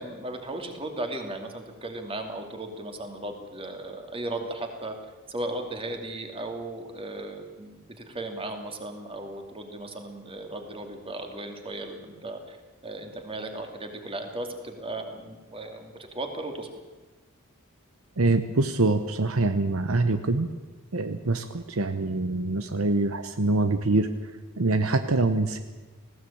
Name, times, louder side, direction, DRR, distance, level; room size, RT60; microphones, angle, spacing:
voice 1, 0.0-5.0 5.3-12.6 12.8-16.7, right 2 dB, 25° right, 4 dB, 2.7 m, -36 dB
voice 2, 18.2-20.5 20.9-24.3 24.6-25.6, right 2 dB, 70° right, 9 dB, 1.0 m, -25 dB
19.0 x 16.5 x 8.7 m, 1.3 s
head